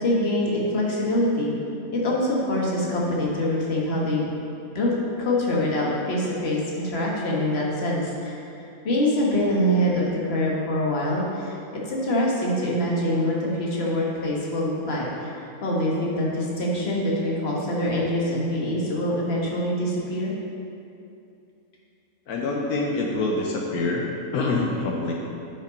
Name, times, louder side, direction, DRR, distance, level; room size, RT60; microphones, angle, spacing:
voice 1, 0.0-1.5 1.9-4.2 4.7-8.4 8.8-20.3, left 1 dB, 45° left, -4 dB, 1.6 m, -24 dB
voice 2, 22.3-24.0 24.3-25.1, left 3 dB, 80° left, -1 dB, 1.3 m, -25 dB
8.7 x 5.3 x 5.2 m, 2.7 s
omnidirectional pair, 1.6 m